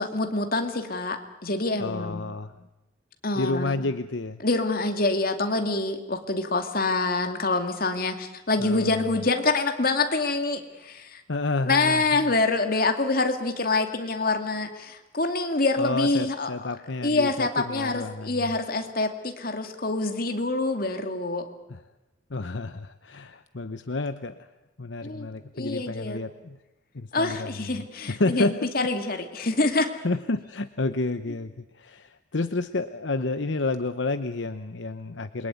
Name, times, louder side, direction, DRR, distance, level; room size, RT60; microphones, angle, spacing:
voice 1, 0.0-2.2 3.2-3.8 4.4-11.2 11.7-16.7 17.0-21.5 25.0-25.3 25.5-26.2 27.1-29.9, left 3 dB, 50° left, 6 dB, 2.4 m, -26 dB
voice 2, 1.8-2.5 3.4-4.4 8.6-8.9 11.3-12.3 15.8-18.4 21.7-21.8 22.3-24.3 24.8-26.6 26.9-27.5 28.1-28.7 30.0-35.5, left 3 dB, 70° left, 10 dB, 0.9 m, -30 dB
28.0 x 22.0 x 9.4 m, 1.0 s
head